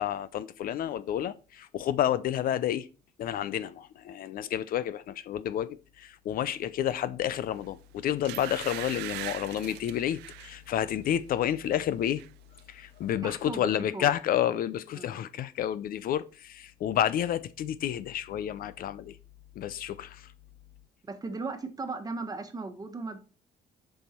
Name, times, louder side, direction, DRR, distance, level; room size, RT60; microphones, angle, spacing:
voice 1, 0.0-2.9 3.2-12.2 12.7-19.2 19.6-20.3, left 11 dB, 60° left, 0.5 m, -30 dB
sound 1, 7.5-7.7 8.2-10.6 11.0-11.3 11.6-12.3 12.6-12.7, right 17 dB, 85° right, 0.4 m, -41 dB
voice 2, 13.2-14.1 14.9-15.2 21.1-23.2, right 3 dB, 20° right, 1.3 m, -37 dB
7.1 x 5.6 x 4.4 m
cardioid pair, 110°, 17 cm